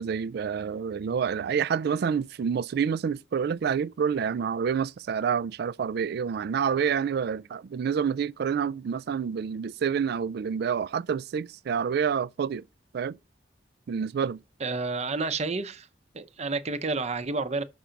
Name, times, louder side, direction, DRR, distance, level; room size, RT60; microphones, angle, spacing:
voice 1, 0.0-12.6 12.9-13.2 13.9-14.4, right 7 dB, 60° right, 0.3 m, -28 dB
voice 2, 14.6-15.9 16.1-17.6, right 3 dB, 35° right, 0.7 m, -30 dB
6.0 x 5.1 x 5.7 m
head